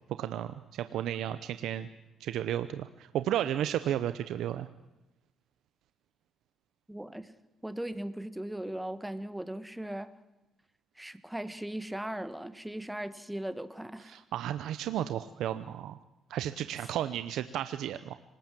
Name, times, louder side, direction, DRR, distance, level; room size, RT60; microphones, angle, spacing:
voice 1, 0.2-1.9 2.2-4.7 14.1-16.0 16.3-18.1, right 11 dB, 80° right, 11 dB, 0.8 m, -33 dB
voice 2, 6.9-7.3 7.6-10.1 10.9-14.2, right 1 dB, 5° right, 12 dB, 1.5 m, -38 dB
26.0 x 19.0 x 7.7 m, 1.0 s
cardioid pair, 90°, 0 cm